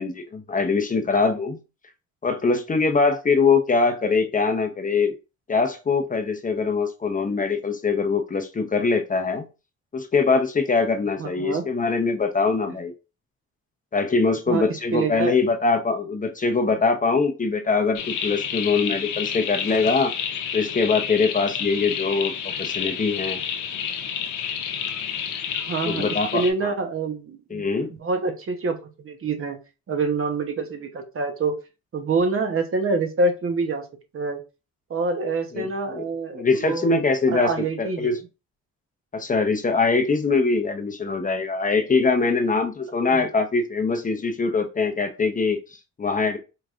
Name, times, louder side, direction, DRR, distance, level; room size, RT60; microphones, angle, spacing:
voice 1, 0.0-1.6 2.2-5.1 5.5-9.5 9.9-12.9 13.9-20.1 20.5-23.4 25.9-26.7 27.5-27.9 35.5-36.1 36.3-38.2 39.1-46.4, left 4 dB, 25° left, 5 dB, 0.7 m, -23 dB
voice 2, 11.2-11.7 14.5-15.3 25.7-26.1 26.3-27.6 28.0-29.6 29.9-31.5 31.9-33.8 34.1-34.4 34.9-36.9 37.3-38.2 43.1-43.2, right 3 dB, 45° right, 6 dB, 1.0 m, -26 dB
sound 1, 17.9-26.5, left 8 dB, 85° left, 0.8 m, -30 dB
4.9 x 3.1 x 2.4 m, 0.30 s
cardioid pair, 90°, 30 cm